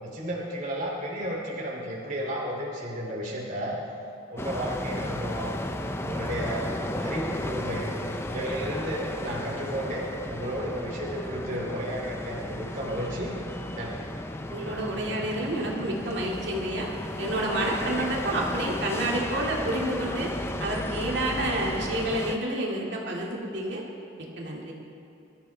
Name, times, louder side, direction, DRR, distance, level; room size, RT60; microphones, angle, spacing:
voice 1, 0.0-3.8 4.3-5.6 6.0-7.9 8.3-13.3 13.7-14.0, equal, 40° right, -3 dB, 2.7 m, -33 dB
sound 1, 4.4-22.4, left 1 dB, 10° left, 0.5 m, -34 dB
voice 2, 14.5-16.9 17.2-20.3 20.6-23.8 24.2-24.7, right 1 dB, 55° right, -3 dB, 2.2 m, -29 dB
23.0 x 13.5 x 3.3 m, 2.8 s
head